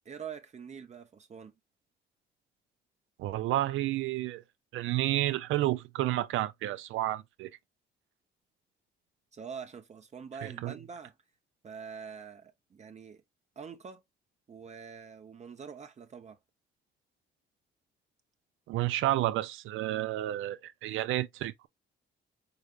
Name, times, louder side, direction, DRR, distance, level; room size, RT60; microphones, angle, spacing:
voice 1, 0.0-1.5 9.3-11.1 11.6-13.2 13.6-14.0 14.5-16.4, right 6 dB, 35° right, 0.6 m, -45 dB
voice 2, 3.2-4.4 4.7-7.5 10.4-10.7 18.7-21.7, right 15 dB, 85° right, 0.5 m, -30 dB
4.8 x 3.3 x 2.3 m
cardioid pair, 90°, 20 cm